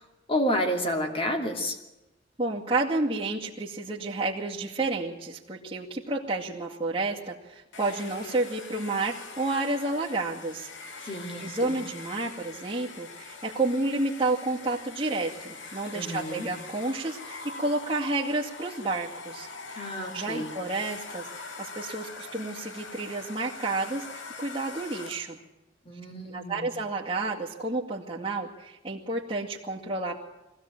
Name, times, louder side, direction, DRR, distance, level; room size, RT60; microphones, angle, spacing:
voice 1, 0.3-1.8 11.0-11.8 15.9-16.5 19.7-20.5 25.9-26.6, equal, 30° left, 3 dB, 2.8 m, -30 dB
voice 2, 2.4-10.7 11.0-11.1 11.4-19.9 20.1-25.4 26.3-30.2, right 2 dB, 25° right, -8 dB, 2.3 m, -30 dB
Domestic sounds home sounds, 7.7-25.4, left 4 dB, 70° left, 2.0 m, -43 dB
22.5 x 16.5 x 9.0 m, 1.0 s
head